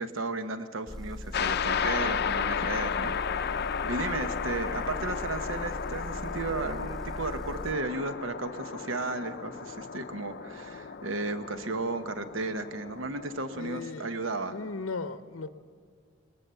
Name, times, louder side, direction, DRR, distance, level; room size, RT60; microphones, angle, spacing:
voice 1, 0.0-3.5 3.8-14.6, right 3 dB, 70° right, 9 dB, 1.1 m, -34 dB
Motor vehicle (road) / Engine, 0.9-7.8, left 1 dB, ahead, 0.6 m, -40 dB
sound 1, 1.3-13.9, left 7 dB, 55° left, 0.5 m, -34 dB
voice 2, 13.5-14.1 14.5-15.5, left 4 dB, 85° left, 11 dB, 0.8 m, -36 dB
20.5 x 20.0 x 6.9 m, 2.1 s
head